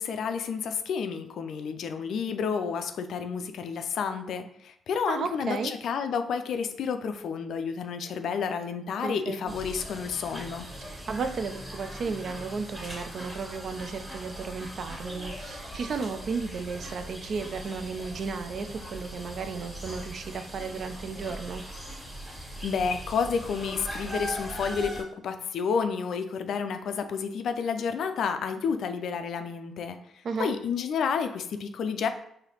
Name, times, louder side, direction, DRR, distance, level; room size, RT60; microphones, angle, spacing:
voice 1, 0.0-10.7 22.6-30.0 30.4-32.1, left 6 dB, 60° left, 8 dB, 0.3 m, -30 dB
voice 2, 5.1-5.7 9.0-9.4 10.7-21.6 30.2-30.5, right 5 dB, 55° right, 8 dB, 0.3 m, -34 dB
sound 1, 9.5-25.0, right 1 dB, 15° right, 1.5 m, -40 dB
3.9 x 2.7 x 2.9 m, 0.72 s
figure-of-eight pair, 40°, 0 cm